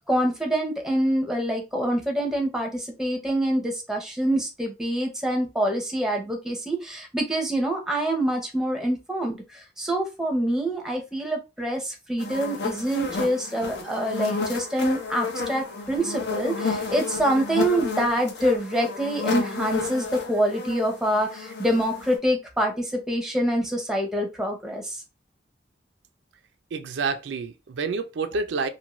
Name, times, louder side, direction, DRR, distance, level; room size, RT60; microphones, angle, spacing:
voice 1, 0.0-25.0, right 1 dB, 5° right, 0.6 m, -26 dB
sound 1, 12.2-22.2, left 4 dB, 70° left, 0.7 m, -31 dB
voice 2, 26.7-28.7, right 4 dB, 85° right, 0.4 m, -28 dB
2.6 x 2.5 x 2.9 m
head